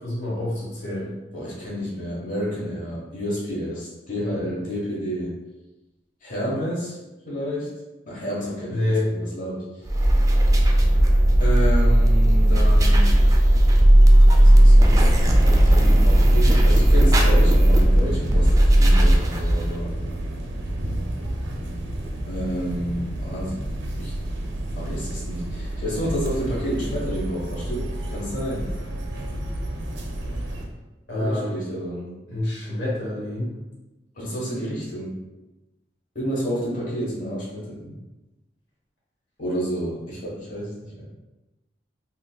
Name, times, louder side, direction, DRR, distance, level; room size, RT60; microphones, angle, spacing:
voice 1, 0.0-1.1 8.7-9.1 31.1-31.6 32.3-33.5, left 1 dB, 80° left, -6 dB, 1.0 m, -27 dB
voice 2, 1.3-5.3 6.2-7.0 7.2-7.7 8.0-9.7 11.4-13.1 14.3-15.1 15.6-19.9 22.2-23.6 24.0-24.1 24.8-28.7 31.1-32.1 34.1-35.2 36.1-37.9 39.4-41.1, equal, 45° left, -6 dB, 1.1 m, -30 dB
sound 1, 9.9-19.8, right 1 dB, 20° right, 0.3 m, -15 dB
sound 2, 14.7-30.7, right 1 dB, 75° right, 0.5 m, -30 dB
3.7 x 2.7 x 2.2 m, 1.1 s
head